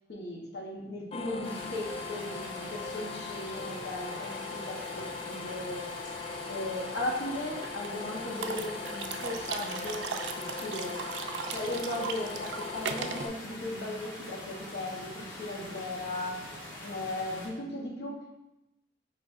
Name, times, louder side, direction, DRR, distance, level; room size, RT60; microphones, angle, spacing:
voice 1, 0.1-5.9 6.5-10.1 10.4-11.0 11.5-16.4 16.8-18.4, left 1 dB, 70° left, -1 dB, 0.9 m, -37 dB
sound 1, 1.1-13.3, left 4 dB, 35° left, 0.3 m, -40 dB
sound 2, 1.4-17.5, left 1 dB, 50° left, 1.4 m, -44 dB
sound 3, 7.6-7.9 8.4-13.3, right 6 dB, 75° right, 0.3 m, -37 dB
5.0 x 4.0 x 2.4 m, 0.93 s
head